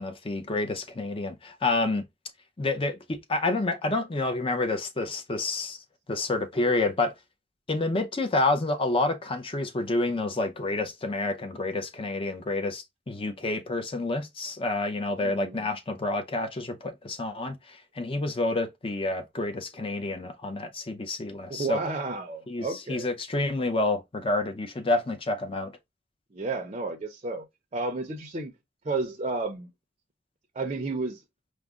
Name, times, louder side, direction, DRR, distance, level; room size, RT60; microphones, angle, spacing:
voice 1, 0.0-2.1 2.6-5.8 6.1-7.1 7.7-21.8 22.5-25.8, left 2 dB, 30° left, 0.6 m, -29 dB
voice 2, 15.2-15.7 21.5-23.1 26.3-27.5 27.7-28.5 28.8-29.7 30.5-31.2, right 3 dB, 35° right, 0.5 m, -32 dB
4.8 x 2.1 x 3.6 m
head